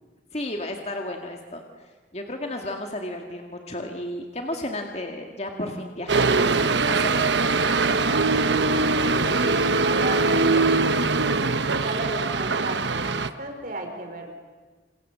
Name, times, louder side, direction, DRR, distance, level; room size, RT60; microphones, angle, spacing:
voice 1, 0.3-1.7 2.1-7.4, left 1 dB, 35° left, 3 dB, 2.0 m, -33 dB
sound 1, 6.1-13.3, right 3 dB, 70° right, 1.1 m, -22 dB
voice 2, 7.6-11.1 11.8-14.3, right 2 dB, 45° right, 4 dB, 4.7 m, -35 dB
28.0 x 27.0 x 7.6 m, 1.4 s
head